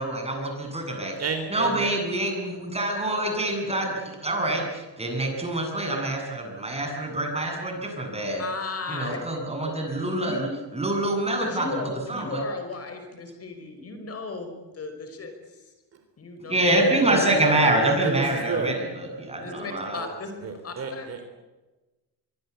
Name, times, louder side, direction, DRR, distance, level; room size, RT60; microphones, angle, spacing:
voice 1, 0.0-1.1 1.5-8.4 8.9-11.7 12.1-12.4 16.5-20.0, right 1 dB, 15° right, 2 dB, 7.9 m, -26 dB
voice 2, 1.2-1.9 16.7-18.7 20.4-21.3, right 5 dB, 35° right, 7 dB, 3.7 m, -31 dB
voice 3, 8.4-9.2 10.2-10.5 11.4-15.7 16.2-16.7 17.1-17.2 19.4-20.4 20.6-21.1, left 3 dB, 35° left, 7 dB, 5.2 m, -35 dB
24.0 x 24.0 x 8.3 m, 1.1 s
cardioid pair, 130°, 41 cm